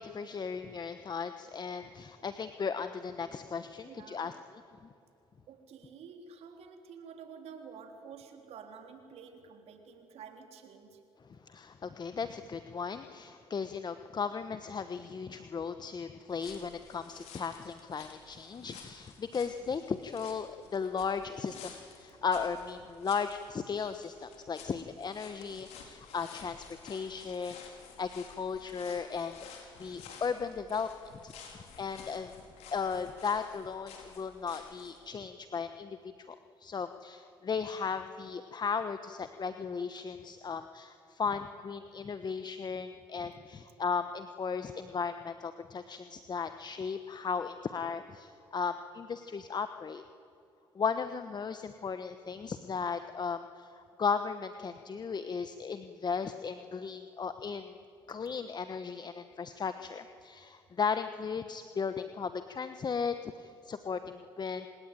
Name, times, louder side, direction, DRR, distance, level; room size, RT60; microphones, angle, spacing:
voice 1, 0.0-4.6 11.3-30.9 31.2-32.3 32.7-36.3 36.6-50.0 50.7-57.7 58.1-64.7, left 5 dB, 40° left, 9 dB, 1.2 m, -36 dB
voice 2, 3.9-4.4 5.5-11.0, right 6 dB, 70° right, 5 dB, 3.7 m, -50 dB
sound 1, 16.3-35.0, left 6 dB, 75° left, 4.7 m, -52 dB
27.5 x 19.5 x 9.3 m, 2.7 s
supercardioid pair, 65°, 11 cm